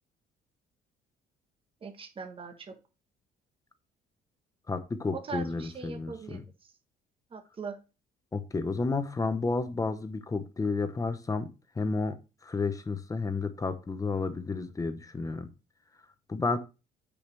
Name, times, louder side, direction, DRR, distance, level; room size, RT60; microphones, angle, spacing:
voice 1, 1.8-2.7 5.1-6.4 7.3-7.8, right 5 dB, 30° right, 7 dB, 1.4 m, -40 dB
voice 2, 4.7-6.4 8.3-11.5 11.8-12.2 12.4-15.5 16.3-16.6, left 3 dB, 20° left, 10 dB, 0.9 m, -31 dB
9.2 x 5.0 x 3.4 m, 0.30 s
cardioid pair, 110°, 17 cm